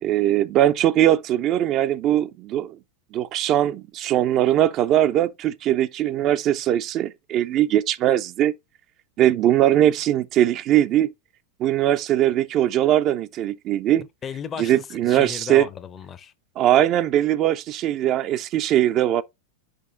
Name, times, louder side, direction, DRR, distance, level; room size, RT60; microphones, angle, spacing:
voice 1, 0.0-2.8 3.1-8.5 9.2-11.1 11.6-14.0 14.6-15.7 16.6-19.2, right 12 dB, 35° right, 0.4 m, -20 dB
voice 2, 14.2-16.3, left 8 dB, 25° left, 0.5 m, -35 dB
5.2 x 5.1 x 3.7 m
figure-of-eight pair, 90°, 0 cm